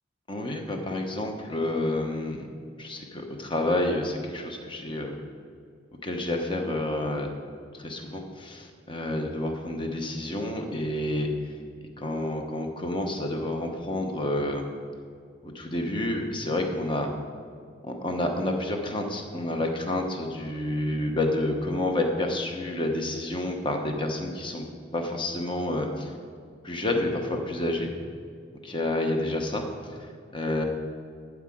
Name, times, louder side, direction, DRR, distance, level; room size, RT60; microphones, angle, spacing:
voice 1, 0.3-2.5 2.8-5.1 6.0-7.3 7.7-11.3 12.0-14.7 15.4-17.1 17.8-24.6 24.9-26.1 26.6-27.9 28.6-29.6 29.9-30.6, left 1 dB, 25° left, 3 dB, 1.0 m, -29 dB
12.5 x 4.8 x 7.7 m, 2.2 s
head